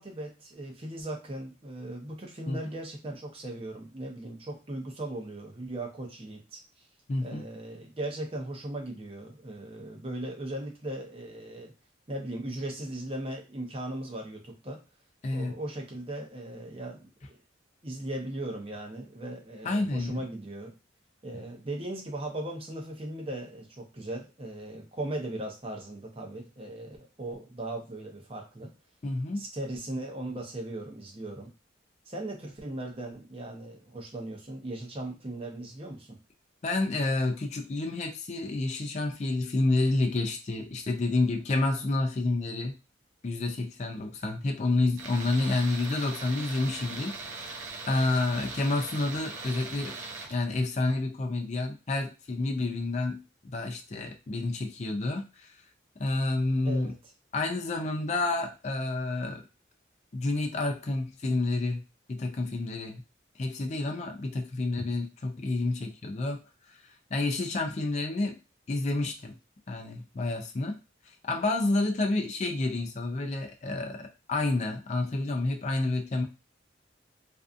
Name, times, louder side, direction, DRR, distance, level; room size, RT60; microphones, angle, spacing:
voice 1, 0.0-6.6 7.2-11.7 12.1-14.8 15.3-17.4 17.8-20.7 21.2-28.7 29.4-31.5 32.1-36.2 56.6-57.0, right 1 dB, 30° right, 1 dB, 0.7 m, -38 dB
voice 2, 7.1-7.4 15.2-15.5 19.6-20.2 21.3-21.4 29.0-29.4 36.6-42.7 43.2-47.6 47.9-50.0 50.3-55.6 56.0-56.9 57.3-59.4 60.1-61.8 62.1-63.0 63.4-66.4 66.7-66.8 67.1-68.4 68.7-69.3 69.7-70.8 71.1-76.2, left 2 dB, 35° left, 3 dB, 0.4 m, -29 dB
Tools, 45.0-50.4, right 3 dB, 90° right, 0.6 m, -40 dB
2.5 x 2.3 x 2.4 m, 0.30 s
head